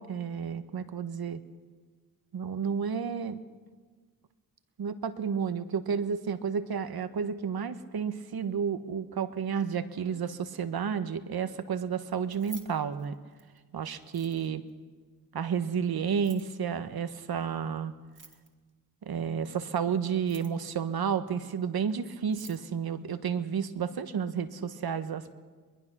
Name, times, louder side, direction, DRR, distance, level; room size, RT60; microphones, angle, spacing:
voice 1, 0.0-1.4 2.3-3.4 4.8-13.1 13.7-14.6 15.3-17.9 19.1-25.4, right 7 dB, 70° right, 11 dB, 1.2 m, -31 dB
Keys jangling, 12.2-13.6 14.0-14.7 16.1-16.6 18.0-18.7 20.1-20.7 21.9-22.0 22.2-22.7, right 6 dB, 55° right, 2.1 m, -51 dB
22.5 x 20.5 x 6.1 m, 1.5 s
cardioid pair, 60°, 38 cm